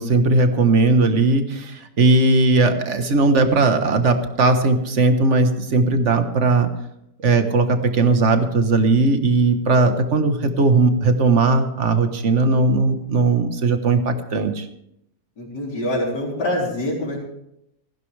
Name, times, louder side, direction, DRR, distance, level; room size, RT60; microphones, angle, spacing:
voice 1, 0.0-6.7 7.2-14.7, right 3 dB, 45° right, 7 dB, 1.6 m, -18 dB
voice 2, 15.4-17.2, left 1 dB, 90° left, -5 dB, 4.3 m, -25 dB
18.5 x 15.0 x 3.4 m, 0.79 s
omnidirectional pair, 1.8 m